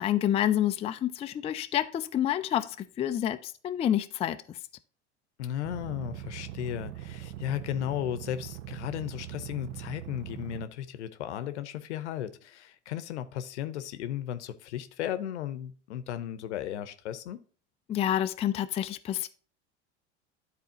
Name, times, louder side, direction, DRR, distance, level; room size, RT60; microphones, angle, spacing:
voice 1, 0.0-4.6 17.9-19.3, left 11 dB, 20° left, 0.3 m, -28 dB
voice 2, 5.4-17.4, left 11 dB, 75° left, 0.8 m, -35 dB
sound 1, 5.6-10.6, right 13 dB, 60° right, 0.7 m, -41 dB
12.5 x 4.2 x 2.8 m
hypercardioid pair, 80°, 35 cm